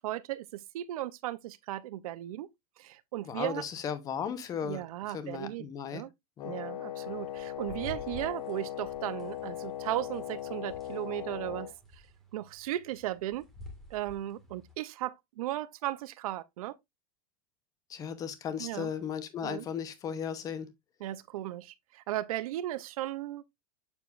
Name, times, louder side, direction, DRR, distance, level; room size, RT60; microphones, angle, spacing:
voice 1, 0.0-2.5 2.8-3.7 4.6-5.7 5.9-6.1 6.4-12.0 12.3-13.5 13.9-16.8 18.6-18.9 19.4-19.7 21.0-23.5, right 14 dB, 70° right, 0.6 m, -36 dB
voice 2, 3.2-4.8 5.1-6.0 6.4-6.5 17.9-20.7, left 7 dB, 20° left, 0.9 m, -36 dB
Wind instrument woodwind instrument, 6.4-11.7, left 12 dB, 90° left, 0.6 m, -39 dB
sound 1, 7.0-14.7, equal, ahead, 1.7 m, -51 dB
7.1 x 6.8 x 2.5 m
supercardioid pair, 170°, 19 cm